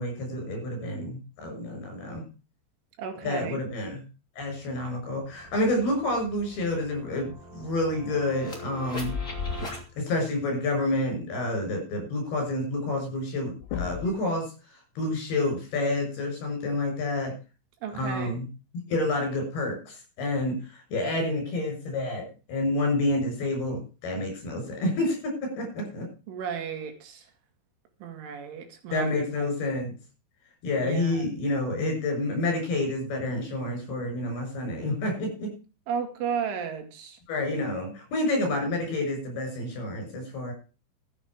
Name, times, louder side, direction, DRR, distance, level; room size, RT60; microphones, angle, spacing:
voice 1, 0.0-2.2 3.2-4.0 4.4-9.1 10.0-14.5 15.0-17.3 17.9-18.5 18.9-26.1 28.9-29.9 30.6-35.5 37.3-40.5, left 2 dB, 55° left, 3 dB, 8.6 m, -29 dB
voice 2, 3.0-3.6 17.8-18.4 26.3-27.3 28.0-29.5 30.8-31.3 35.9-37.2, right 7 dB, 85° right, 5 dB, 4.7 m, -34 dB
sound 1, 4.8-9.8, left 3 dB, 20° left, 2.7 m, -38 dB
sound 2, 13.2-13.3 13.6-14.3 16.0-16.1 17.9-18.0 18.9-19.0, left 10 dB, 80° left, 4.1 m, -35 dB
13.5 x 9.0 x 6.2 m, 0.34 s
omnidirectional pair, 5.4 m